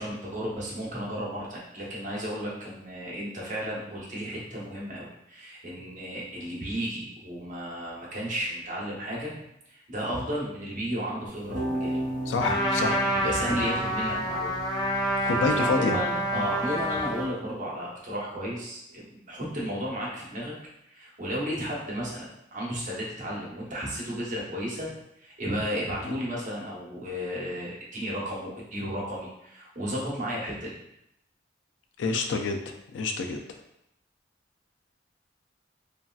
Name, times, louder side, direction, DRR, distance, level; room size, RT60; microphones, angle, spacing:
voice 1, 0.0-9.4 9.7-12.0 12.4-14.5 15.2-20.5 20.9-24.9 25.2-30.7, equal, 45° right, -5 dB, 0.9 m, -33 dB
sound 1, 11.3-17.2, right 1 dB, 75° right, 0.8 m, -36 dB
voice 2, 12.3-13.0 15.3-16.0 16.3-16.4 32.0-32.6 32.9-33.4, left 4 dB, 85° left, 5 dB, 0.4 m, -27 dB
Trumpet, 12.4-17.3, equal, 25° left, 0.6 m, -28 dB
3.0 x 2.6 x 2.3 m, 0.80 s
head